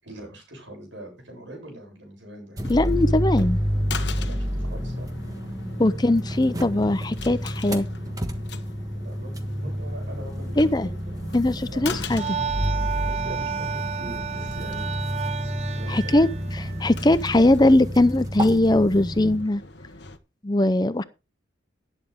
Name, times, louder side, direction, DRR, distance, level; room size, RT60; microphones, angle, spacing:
voice 1, 0.0-2.6 4.2-5.1 9.0-10.9 11.7-11.8 13.0-14.9 15.7-16.3, right 1 dB, 75° right, 7.8 m, -41 dB
sound 1, 2.6-20.2, left 3 dB, 60° left, 1.3 m, -41 dB
sound 2, 2.6-19.4, equal, 20° right, 1.4 m, -30 dB
voice 2, 2.7-3.6 5.8-7.9 10.6-10.9 11.3-12.4 15.9-16.3 16.8-19.6 20.4-21.0, left 1 dB, 20° left, 0.6 m, -20 dB
sound 3, 12.1-17.3, right 7 dB, 35° right, 0.9 m, -32 dB
12.0 x 11.0 x 3.6 m
head